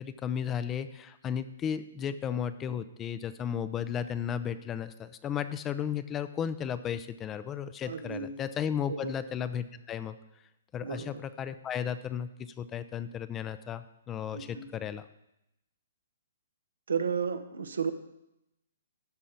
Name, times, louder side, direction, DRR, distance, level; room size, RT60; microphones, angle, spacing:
voice 1, 0.0-10.2 10.7-15.0, left 8 dB, 20° left, 12 dB, 0.5 m, -34 dB
voice 2, 7.9-8.3 8.9-9.2 10.8-11.2 14.3-14.7 16.9-17.9, right 6 dB, 80° right, 9 dB, 0.9 m, -33 dB
12.5 x 5.0 x 5.8 m, 0.86 s
hypercardioid pair, 140°, 0 cm